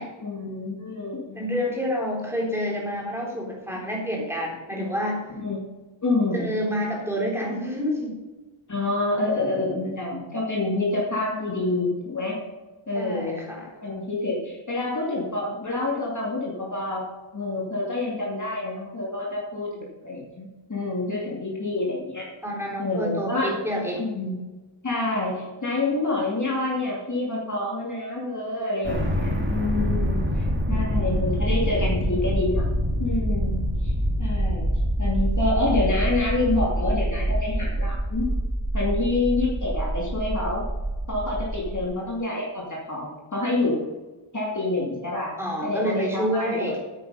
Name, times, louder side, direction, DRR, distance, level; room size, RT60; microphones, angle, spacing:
voice 1, 0.2-1.5 5.4-5.7 6.0-6.5 8.7-12.4 12.9-13.4 13.8-17.1 17.3-22.3 22.8-23.6 24.0-24.4 24.8-32.7 33.0-33.9 34.2-34.7 35.0-38.3 38.7-40.7 41.1-43.8 44.3-46.6, left 2 dB, 35° left, -3 dB, 2.6 m, -27 dB
voice 2, 1.4-5.2 6.3-8.2 12.9-13.7 22.4-24.1 45.4-46.8, equal, 5° right, -2 dB, 3.7 m, -28 dB
sound 1, 28.8-41.9, equal, 25° right, 2.3 m, -25 dB
9.2 x 8.9 x 5.5 m, 1.2 s
wide cardioid pair, 115°, 49 cm